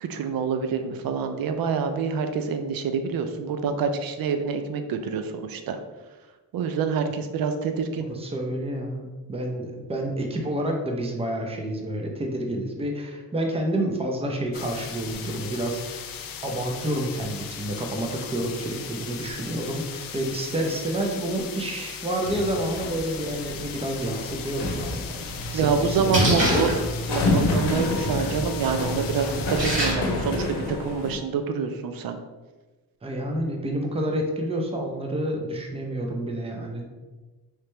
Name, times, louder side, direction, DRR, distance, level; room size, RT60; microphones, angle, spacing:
voice 1, 0.0-5.8 6.5-8.1 25.5-26.7 27.1-32.2, right 6 dB, 65° right, 7 dB, 0.5 m, -27 dB
voice 2, 8.0-16.0 16.4-26.6 33.0-36.9, right 1 dB, 15° right, 2 dB, 0.6 m, -29 dB
sound 1, 14.5-29.9, left 7 dB, 60° left, 0.5 m, -38 dB
sound 2, 22.2-31.2, left 2 dB, 80° left, 0.8 m, -30 dB
Splash splatter, 25.4-30.4, equal, 30° right, 1.5 m, -27 dB
3.2 x 2.8 x 3.2 m, 1.2 s
cardioid pair, 85°, 39 cm